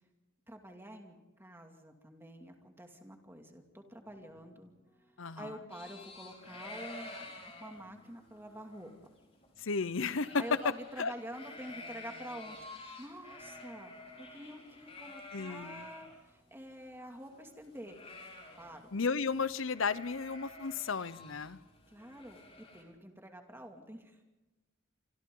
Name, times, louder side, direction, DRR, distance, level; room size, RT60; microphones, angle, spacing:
voice 1, 0.5-4.7 5.4-7.1 7.5-8.9 10.4-13.9 14.2-18.0 18.6-18.8 21.9-24.2, equal, 10° right, 3 dB, 2.4 m, -48 dB
sound 1, 3.7-22.8, equal, 10° left, 6.4 m, -68 dB
voice 2, 5.2-5.5 9.6-10.6 11.0-11.1 15.3-15.9 18.9-21.6, left 4 dB, 80° left, 16 dB, 0.8 m, -33 dB
sound 2, 5.7-16.2 16.5-16.6 16.8-19.0 19.2-19.4 19.6-22.8, left 2 dB, 30° left, 4.6 m, -50 dB
27.0 x 26.0 x 3.9 m, 1.1 s
head